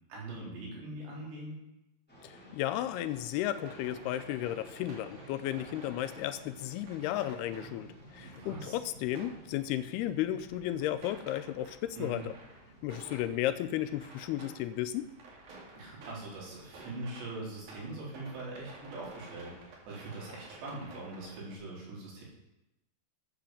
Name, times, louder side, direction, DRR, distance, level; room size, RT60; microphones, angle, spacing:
voice 1, 0.1-1.6 8.2-8.8 12.0-12.3 15.8-22.2, right 2 dB, 85° right, -5 dB, 6.2 m, -42 dB
sound 1, 2.1-21.4, right 1 dB, 5° left, 2.8 m, -56 dB
voice 2, 2.2-12.3 12.8-15.1, left 13 dB, 80° left, 11 dB, 2.5 m, -34 dB
sound 2, 3.4-21.5, right 3 dB, 60° right, 3.9 m, -53 dB
13.0 x 7.9 x 7.2 m, 0.93 s
omnidirectional pair, 4.9 m